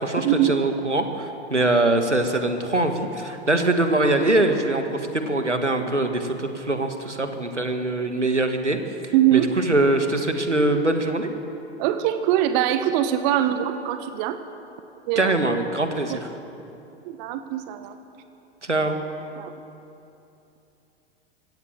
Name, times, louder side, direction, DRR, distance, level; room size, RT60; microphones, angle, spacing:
voice 1, 0.0-8.8 9.0-11.3 15.2-16.3 18.6-19.0, right 2 dB, 85° right, 6 dB, 2.1 m, -23 dB
voice 2, 9.1-9.5 11.8-14.4 15.1-15.4 16.1-16.2 17.0-18.0 19.4-19.5, right 12 dB, 40° right, 9 dB, 1.3 m, -22 dB
25.5 x 16.5 x 7.6 m, 2.9 s
figure-of-eight pair, 95°, 34 cm